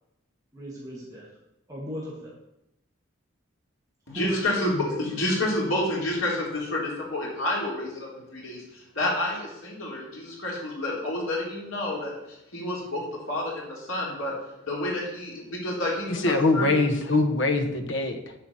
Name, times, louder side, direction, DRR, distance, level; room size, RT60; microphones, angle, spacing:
voice 1, 0.5-1.3 1.7-2.3 4.1-5.0, right 1 dB, 15° right, -6 dB, 2.0 m, -36 dB
voice 2, 4.1-14.3 14.6-16.7, left 1 dB, 90° left, -3 dB, 3.8 m, -29 dB
voice 3, 16.1-18.3, left 2 dB, 65° left, 7 dB, 1.2 m, -23 dB
10.0 x 5.0 x 7.4 m, 0.88 s
head